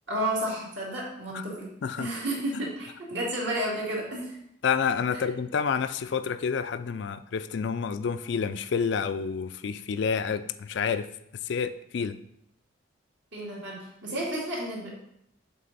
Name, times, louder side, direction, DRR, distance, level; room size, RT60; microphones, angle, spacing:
voice 1, 0.1-1.7 2.0-4.4 13.3-14.9, right 1 dB, 65° right, -4 dB, 2.2 m, -31 dB
voice 2, 4.6-11.1 11.4-12.2, left 6 dB, 60° left, 13 dB, 0.3 m, -29 dB
7.5 x 3.8 x 4.0 m, 0.75 s
head